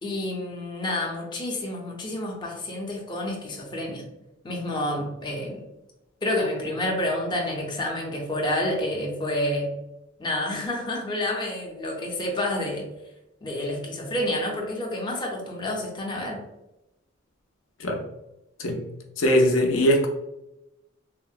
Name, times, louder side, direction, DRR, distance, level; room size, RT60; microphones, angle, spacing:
voice 1, 0.0-4.0 4.4-5.6 6.2-9.7 10.2-12.8 13.4-16.4, left 1 dB, 25° left, -1 dB, 0.5 m, -29 dB
voice 2, 19.2-20.1, equal, 75° left, 1 dB, 0.5 m, -21 dB
3.5 x 2.0 x 2.3 m, 0.92 s
head